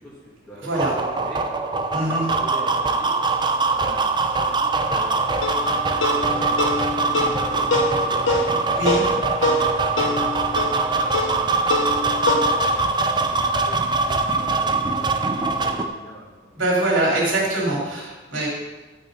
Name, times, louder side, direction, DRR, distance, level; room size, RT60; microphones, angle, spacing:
voice 1, 0.0-1.4 1.9-3.2 3.7-5.1 5.6-9.2 9.4-16.3 17.1-17.9, equal, 5° left, -9 dB, 2.5 m, -42 dB
voice 2, 0.6-0.9 1.9-2.2 8.8-9.0 16.6-18.5, right 1 dB, 60° right, -3 dB, 3.7 m, -23 dB
sound 1, 0.7-15.9, right 3 dB, 20° right, 0.6 m, -22 dB
sound 2, 5.4-12.4, left 2 dB, 65° left, 1.3 m, -25 dB
11.5 x 5.5 x 5.6 m, 1.2 s
head